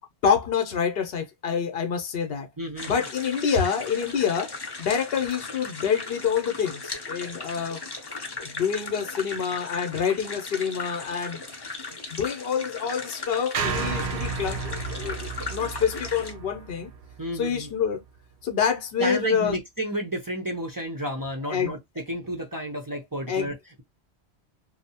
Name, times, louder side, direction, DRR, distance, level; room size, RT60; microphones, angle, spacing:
voice 1, 0.2-2.5 2.9-4.5 4.8-7.8 8.4-11.4 12.1-16.9 17.4-18.0 18.4-19.6 21.5-21.7 23.3-23.5, left 7 dB, 65° left, 0.8 m, -27 dB
voice 2, 2.6-3.1 3.5-3.6 17.2-17.7 19.0-23.8, right 1 dB, 30° right, 0.3 m, -31 dB
sound 1, 2.8-16.3, left 3 dB, 30° left, 0.5 m, -37 dB
sound 2, 13.5-17.8, right 5 dB, 65° right, 0.7 m, -32 dB
2.7 x 2.0 x 2.7 m
omnidirectional pair, 1.1 m